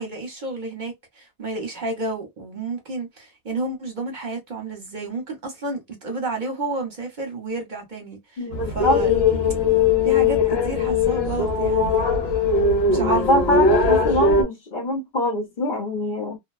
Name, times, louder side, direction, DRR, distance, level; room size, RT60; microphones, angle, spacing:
voice 1, 0.0-8.4 8.7-9.1 10.0-12.0 12.9-13.7, right 2 dB, 50° right, 0.9 m, -31 dB
voice 2, 8.4-9.0 12.9-16.4, left 2 dB, 50° left, 1.0 m, -24 dB
sound 1, 8.5-14.4, left 4 dB, 65° left, 1.1 m, -20 dB
2.6 x 2.1 x 2.3 m
omnidirectional pair, 1.1 m